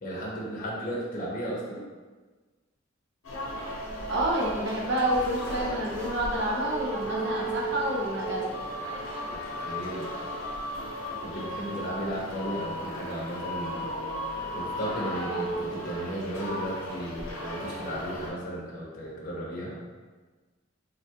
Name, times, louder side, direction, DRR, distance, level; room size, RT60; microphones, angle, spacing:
voice 1, 0.0-1.8 9.3-10.1 11.1-13.9 14.5-19.8, equal, 40° left, -5 dB, 0.6 m, -35 dB
sound 1, 3.2-18.3, equal, 85° left, 0.7 m, -35 dB
voice 2, 4.1-8.6, right 1 dB, 60° right, -2 dB, 0.6 m, -28 dB
3.5 x 2.3 x 2.7 m, 1.3 s
head